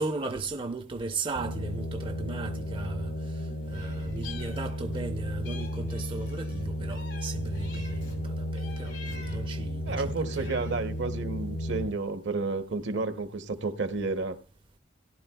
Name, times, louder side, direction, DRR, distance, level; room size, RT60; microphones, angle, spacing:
voice 1, 0.0-10.7, right 3 dB, 30° right, 0.5 m, -36 dB
sound 1, 1.4-11.9, equal, 60° left, 0.9 m, -34 dB
Meow, 3.7-5.1 5.4-8.2 8.6-9.6 10.1-10.9, left 5 dB, 80° left, 2.8 m, -48 dB
voice 2, 9.9-14.4, right 3 dB, 70° right, 0.8 m, -31 dB
17.0 x 11.0 x 2.3 m
head